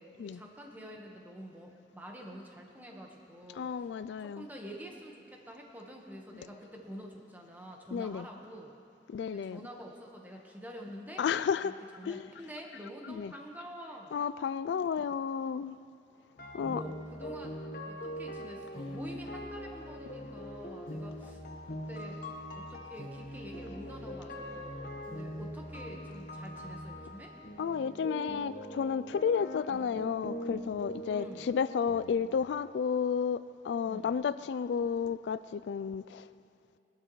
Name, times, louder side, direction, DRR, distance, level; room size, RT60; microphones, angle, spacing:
voice 1, 0.0-3.9 4.2-8.7 9.3-11.2 11.6-14.1 16.6-17.6 17.9-22.2 22.5-27.3 31.1-31.5 33.8-34.2, equal, 10° right, 1.3 m, -47 dB
voice 2, 3.6-4.5 7.9-8.3 9.1-9.6 11.2-11.8 12.0-12.3 13.0-13.3 14.1-15.8 16.5-16.8 27.6-36.3, left 6 dB, 75° left, 0.3 m, -32 dB
sound 1, 16.4-32.3, equal, 50° left, 1.3 m, -42 dB
20.0 x 12.0 x 3.1 m
head